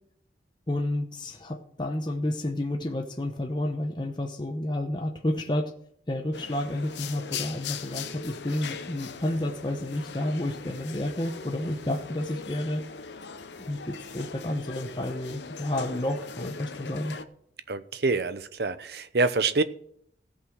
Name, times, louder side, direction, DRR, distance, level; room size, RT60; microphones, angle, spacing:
voice 1, 0.7-5.7 6.1-12.8 13.7-17.1, left 1 dB, 25° left, 3 dB, 0.9 m, -30 dB
sound 1, 6.3-17.3, left 6 dB, 80° left, 0.8 m, -40 dB
voice 2, 17.7-19.6, right 3 dB, 65° right, 13 dB, 0.7 m, -26 dB
16.0 x 5.6 x 6.3 m, 0.66 s
head